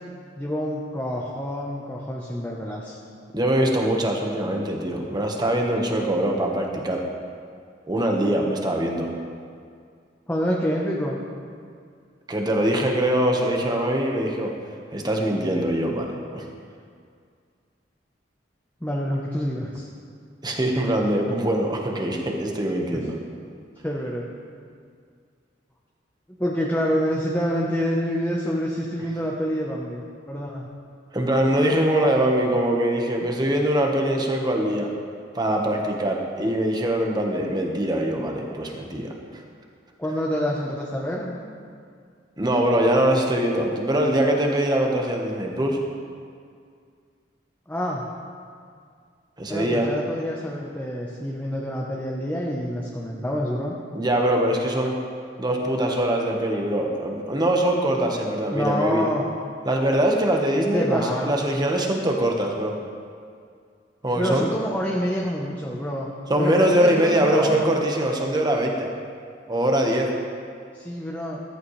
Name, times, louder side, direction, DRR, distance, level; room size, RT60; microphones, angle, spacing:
voice 1, 0.4-3.0 10.3-11.2 18.8-19.8 22.9-23.0 23.8-24.3 26.4-30.7 33.2-33.3 40.0-41.3 47.7-48.1 49.5-53.7 58.5-59.2 60.7-61.3 64.2-66.1 66.4-67.7 70.7-71.4, equal, 10° left, -3 dB, 1.0 m, -27 dB
voice 2, 3.3-7.0 7.9-9.1 12.3-14.5 14.9-16.4 20.4-23.2 31.1-34.9 35.3-39.1 42.4-45.8 49.4-49.9 53.9-54.9 55.4-59.0 59.6-62.7 64.0-64.5 66.3-68.9 69.5-70.1, right 1 dB, 25° right, 1 dB, 1.3 m, -23 dB
14.0 x 14.0 x 3.3 m, 2.2 s
head